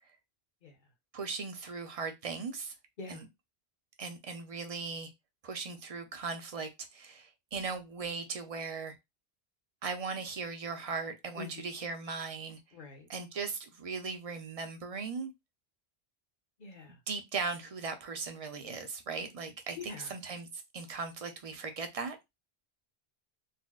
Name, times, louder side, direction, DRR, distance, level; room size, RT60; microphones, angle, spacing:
voice 1, 1.1-2.7 3.1-3.3 4.0-5.1 5.4-9.0 9.8-12.6 13.1-15.3 17.1-22.2, right 4 dB, 45° right, 0.5 m, -38 dB
voice 2, 11.4-11.7 12.7-13.1 16.6-17.0 19.8-20.1, left 4 dB, 55° left, 1.0 m, -45 dB
4.0 x 2.1 x 2.3 m
omnidirectional pair, 1.1 m